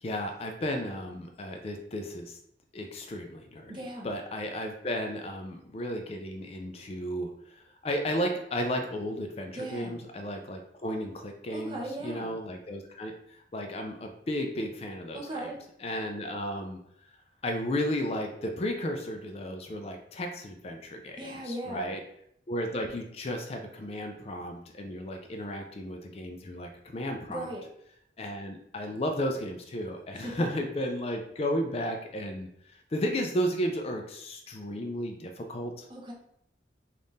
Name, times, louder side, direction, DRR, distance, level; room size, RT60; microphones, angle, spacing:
voice 1, 0.0-2.4 2.7-3.7 4.0-15.5 15.8-17.1 17.4-22.0 22.5-27.5 28.2-35.9, equal, 35° left, 4 dB, 0.4 m, -34 dB
voice 2, 3.7-4.1 9.5-10.0 11.5-12.3 15.1-15.6 21.2-21.9 27.3-27.7 30.2-30.5 35.9-36.1, right 1 dB, 25° right, -2 dB, 0.7 m, -37 dB
3.5 x 2.5 x 3.9 m, 0.72 s
head